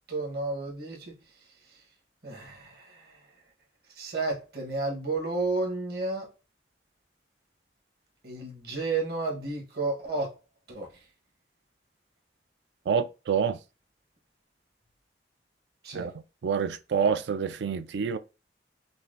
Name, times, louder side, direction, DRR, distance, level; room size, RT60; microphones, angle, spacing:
voice 1, 0.1-1.1 2.2-2.9 4.0-6.3 8.2-10.3 10.7-10.9 15.8-16.1, right 3 dB, 60° right, 1.2 m, -31 dB
voice 2, 12.9-13.6 15.9-18.2, right 6 dB, 80° right, 0.3 m, -27 dB
5.5 x 2.1 x 2.6 m
head